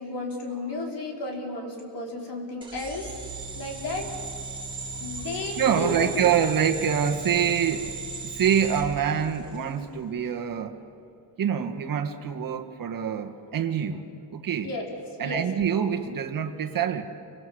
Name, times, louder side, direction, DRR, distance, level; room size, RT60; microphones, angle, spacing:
voice 1, 0.0-3.1 3.6-4.1 4.9-6.5 14.6-14.9 15.2-15.4, left 2 dB, 75° left, 0 dB, 5.5 m, -33 dB
sound 1, 2.6-9.7, right 4 dB, 10° right, 3.7 m, -37 dB
voice 2, 5.3-7.9 8.2-10.8 11.4-14.7 15.2-17.0, right 8 dB, 50° right, 7 dB, 1.8 m, -26 dB
29.0 x 26.0 x 7.9 m, 2.7 s
wide cardioid pair, 165°, 42 cm